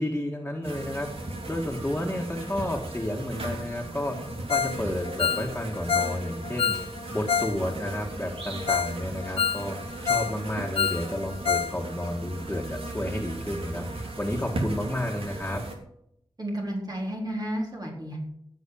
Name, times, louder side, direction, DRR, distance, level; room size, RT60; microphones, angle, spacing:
voice 1, 0.0-4.2 4.5-6.8 7.1-15.6, left 1 dB, 15° left, -1 dB, 2.0 m, -31 dB
sound 1, 0.6-15.7, right 2 dB, 85° right, 3.1 m, -37 dB
Ringtone, 4.5-4.8 5.0-7.6 7.8-7.9 8.4-8.5 8.7-9.0 9.2-10.4 10.6-11.8 12.0-12.1 12.5-12.6, left 7 dB, 75° left, 0.4 m, -27 dB
voice 2, 16.4-18.2, right 1 dB, 45° right, -2 dB, 4.1 m, -32 dB
16.0 x 6.4 x 7.2 m, 0.77 s
wide cardioid pair, 75°, 10 cm